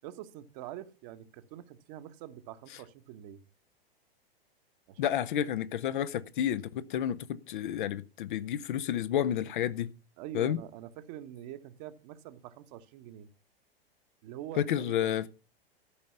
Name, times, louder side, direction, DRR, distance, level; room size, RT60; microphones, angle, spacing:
voice 1, 0.0-3.4 4.9-5.2 10.2-13.3 14.2-15.1, right 12 dB, 40° right, 1.2 m, -45 dB
voice 2, 5.0-9.9 10.3-10.6 14.6-15.3, left 10 dB, 55° left, 0.8 m, -30 dB
13.0 x 5.2 x 6.9 m
figure-of-eight pair, 100°, 30 cm